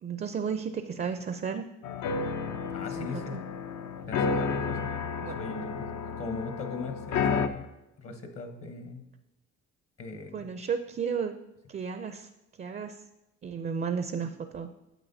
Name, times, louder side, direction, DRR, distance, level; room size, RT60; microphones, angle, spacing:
voice 1, 0.0-1.6 3.0-3.4 5.2-5.4 10.3-11.4 11.7-13.1 13.4-14.7, right 6 dB, 30° right, 8 dB, 0.4 m, -33 dB
sound 1, 1.8-7.5, left 5 dB, 70° left, 0.6 m, -31 dB
voice 2, 2.7-3.4 4.1-4.8 5.4-7.7 8.0-9.1 10.0-10.5, left 4 dB, 50° left, 7 dB, 0.9 m, -39 dB
9.0 x 7.6 x 2.6 m, 0.97 s
cardioid pair, 90°, 30 cm